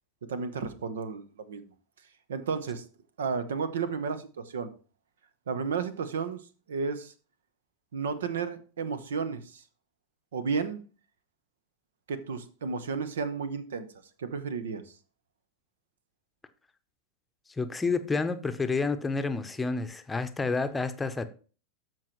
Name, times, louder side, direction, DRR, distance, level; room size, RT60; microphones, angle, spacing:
voice 1, 0.3-1.7 2.3-2.8 3.2-4.7 5.5-7.1 7.9-9.6 10.3-10.8 12.1-13.9 14.2-14.9, right 5 dB, 75° right, 0.8 m, -33 dB
voice 2, 17.6-21.2, left 4 dB, 15° left, 0.8 m, -29 dB
13.0 x 4.6 x 3.1 m
figure-of-eight pair, 85°, 0 cm